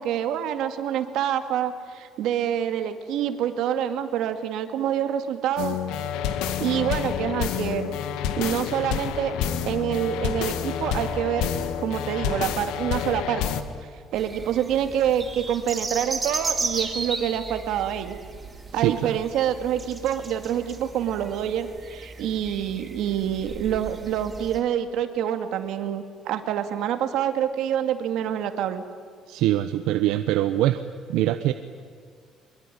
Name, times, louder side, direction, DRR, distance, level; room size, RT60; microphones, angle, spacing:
voice 1, 0.0-5.8 6.6-7.9 8.4-9.3 9.6-11.5 11.8-13.4 14.1-18.2 18.7-28.8, right 10 dB, 65° right, 7 dB, 2.2 m, -26 dB
sound 1, 5.6-13.6, left 9 dB, 85° left, 1.8 m, -28 dB
sound 2, 14.1-24.6, right 3 dB, 15° right, 2.5 m, -35 dB
voice 2, 18.7-19.2 29.3-30.8 31.1-31.5, right 14 dB, 85° right, 9 dB, 1.0 m, -23 dB
23.5 x 22.5 x 10.0 m, 2.1 s
cardioid pair, 160°, 0 cm